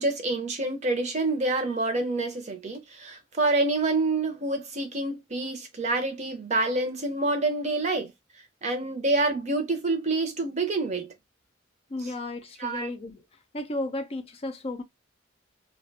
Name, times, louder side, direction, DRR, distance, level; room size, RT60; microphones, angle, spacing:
voice 1, 0.0-8.1 8.6-11.1 12.0-12.1 12.6-12.9, right 2 dB, 35° right, 0.6 m, -27 dB
voice 2, 11.9-13.2 13.5-14.8, left 2 dB, 30° left, 0.4 m, -33 dB
2.4 x 2.2 x 2.6 m
head